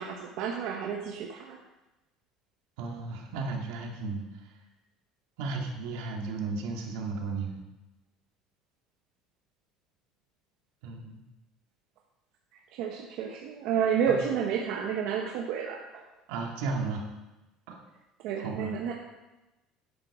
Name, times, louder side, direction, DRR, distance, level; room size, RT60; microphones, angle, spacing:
voice 1, 0.0-1.6 12.5-16.0 18.2-18.9, right 7 dB, 60° right, 0 dB, 1.1 m, -30 dB
voice 2, 2.8-4.5 5.4-7.5 10.8-11.2 14.1-14.2 16.3-17.1 17.7-17.8 18.4-18.8, right 3 dB, 85° right, 1 dB, 2.2 m, -34 dB
10.5 x 8.4 x 4.9 m, 1.1 s
cardioid pair, 165°, 0 cm